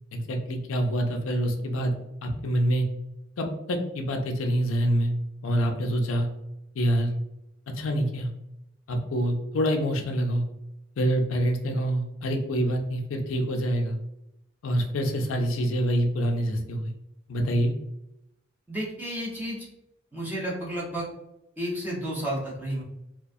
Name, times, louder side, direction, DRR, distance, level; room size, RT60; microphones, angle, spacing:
voice 1, 0.1-1.9 2.2-2.9 3.4-5.1 5.4-6.3 6.8-7.1 7.8-8.3 8.9-10.4 11.0-14.0 14.6-16.9 17.3-17.7, equal, 85° left, 3 dB, 0.4 m, -26 dB
voice 2, 18.7-19.7 20.1-21.1 21.6-22.8, right 1 dB, 10° right, -7 dB, 0.8 m, -31 dB
2.3 x 2.2 x 2.5 m, 0.86 s
head